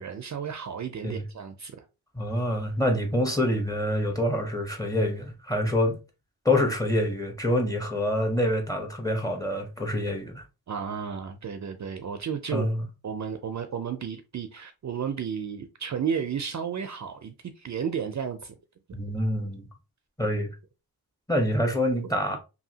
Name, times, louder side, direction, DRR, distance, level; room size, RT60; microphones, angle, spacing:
voice 1, 0.0-1.9 10.7-12.7 13.0-18.6 18.9-19.0 22.0-22.1, right 7 dB, 45° right, 0.4 m, -33 dB
voice 2, 2.1-6.0 6.4-10.4 12.5-12.8 18.9-19.7 20.2-20.5 21.3-22.4, left 1 dB, 10° left, 0.8 m, -26 dB
2.8 x 2.7 x 2.7 m
wide cardioid pair, 85°, 39 cm